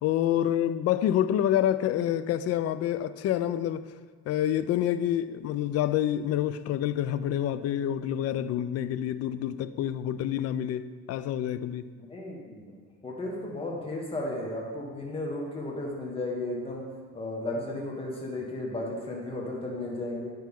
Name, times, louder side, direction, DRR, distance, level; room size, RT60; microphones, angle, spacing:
voice 1, 0.0-3.9 4.3-11.9, left 11 dB, 55° left, 0.4 m, -27 dB
voice 2, 12.0-12.8 13.0-16.8 17.1-20.3, left 2 dB, 20° left, 1.4 m, -34 dB
9.2 x 5.6 x 3.6 m
cardioid pair, 115°, 30 cm